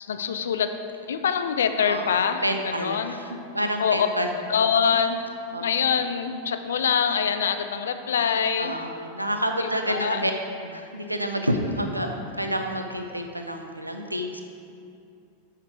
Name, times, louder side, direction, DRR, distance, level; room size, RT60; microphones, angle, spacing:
voice 1, 0.1-0.7 1.1-3.2 3.8-4.1 4.5-5.2 5.6-8.8 9.6-10.2, left 7 dB, 65° left, 9 dB, 0.5 m, -24 dB
voice 2, 1.8-2.1 2.4-4.3 4.9-5.0 5.5-5.6 8.6-10.3 10.6-14.4, equal, 90° right, 4 dB, 0.6 m, -29 dB
8.8 x 5.8 x 4.7 m, 2.6 s
figure-of-eight pair, 90°, 0 cm